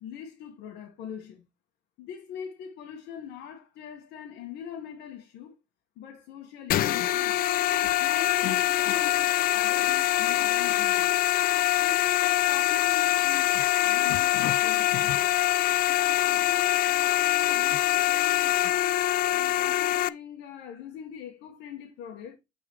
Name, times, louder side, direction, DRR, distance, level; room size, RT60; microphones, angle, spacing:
voice 1, 0.0-1.4 2.0-5.5 6.0-7.4 8.0-11.1 11.8-15.3 16.0-18.5 19.3-22.3, left 8 dB, 85° left, 1.3 m, -42 dB
sound 1, 6.7-20.1, left 14 dB, 60° left, 0.4 m, -24 dB
9.1 x 3.9 x 3.0 m
cardioid pair, 110°, 17 cm